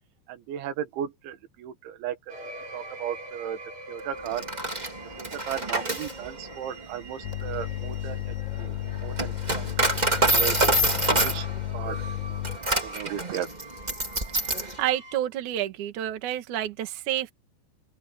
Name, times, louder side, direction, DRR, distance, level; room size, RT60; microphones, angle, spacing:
voice 1, 0.3-2.4 2.7-3.6 3.9-4.5 5.2-8.7 9.0-9.9 10.1-11.5 11.7-12.4 12.8-13.5, right 10 dB, 85° right, 4.1 m, -36 dB
sound 1, 2.3-15.2, right 2 dB, 40° right, 6.9 m, -45 dB
Coin (dropping), 4.2-14.8, right 1 dB, 15° right, 1.4 m, -27 dB
sound 2, 7.2-12.6, left 14 dB, 75° left, 2.2 m, -33 dB
voice 2, 14.8-17.3, right 12 dB, 55° right, 2.7 m, -29 dB
open air
omnidirectional pair, 5.2 m